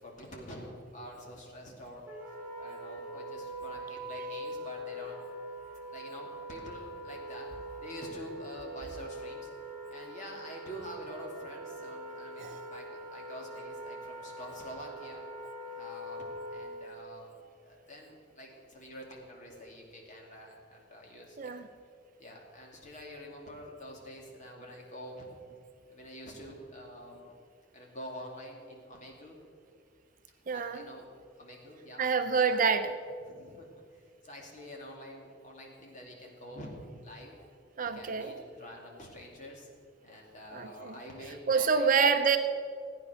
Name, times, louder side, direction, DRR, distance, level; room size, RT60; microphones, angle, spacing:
voice 1, 0.0-2.0 2.6-5.2 5.9-7.5 7.8-9.5 9.9-15.2 15.7-21.7 22.2-25.3 25.9-27.4 27.7-29.4 30.5-31.1 31.4-32.0 32.4-32.8 33.2-33.7 34.2-36.7 37.0-37.4 37.8-39.7 40.0-42.1, equal, 40° left, -1 dB, 2.6 m, -47 dB
Wind instrument woodwind instrument, 2.1-16.9, right 1 dB, 15° right, 4.2 m, -43 dB
voice 2, 30.5-30.8 32.0-32.9 37.8-38.4 40.5-40.9 41.5-42.4, right 5 dB, 45° right, 8 dB, 0.7 m, -27 dB
15.5 x 9.4 x 6.3 m, 2.2 s
head